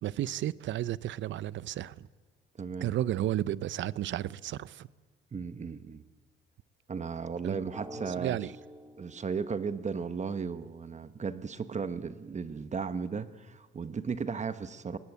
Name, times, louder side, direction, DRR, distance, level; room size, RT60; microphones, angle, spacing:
voice 1, 0.0-1.9 2.8-4.9 7.4-7.6 8.2-8.5, right 13 dB, 70° right, 0.6 m, -32 dB
voice 2, 2.6-2.9 5.3-6.0 6.9-8.5 9.0-15.0, right 5 dB, 35° right, 1.1 m, -35 dB
Drum, 7.7-10.3, right 1 dB, 15° right, 2.8 m, -47 dB
20.5 x 19.0 x 8.4 m
cardioid pair, 90°, 20 cm